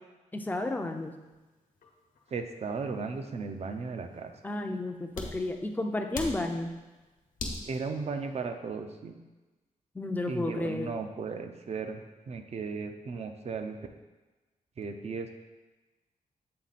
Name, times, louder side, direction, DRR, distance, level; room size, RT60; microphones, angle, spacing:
voice 1, 0.3-1.1 4.4-6.7 9.9-11.0, left 2 dB, 15° left, 4 dB, 0.5 m, -32 dB
sound 1, 0.8-8.5, left 2 dB, 75° left, 1.1 m, -43 dB
voice 2, 2.3-4.3 7.6-9.2 10.3-12.0 12.3-13.8 14.8-15.3, right 4 dB, 50° right, 6 dB, 0.6 m, -36 dB
7.7 x 3.8 x 4.1 m, 1.2 s
wide cardioid pair, 130°, 14 cm